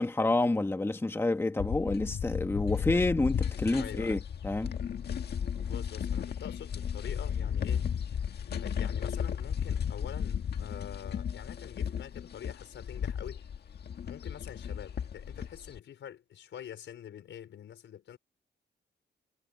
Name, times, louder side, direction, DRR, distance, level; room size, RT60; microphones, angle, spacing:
voice 1, 0.0-4.7, left 2 dB, 10° left, 1.5 m, -29 dB
sound 1, 1.6-15.8, left 8 dB, 60° left, 1.7 m, -34 dB
voice 2, 3.7-4.2 5.5-7.9 8.6-13.5 14.0-18.2, left 9 dB, 80° left, 4.9 m, -46 dB
wide cardioid pair, 145°, 19 cm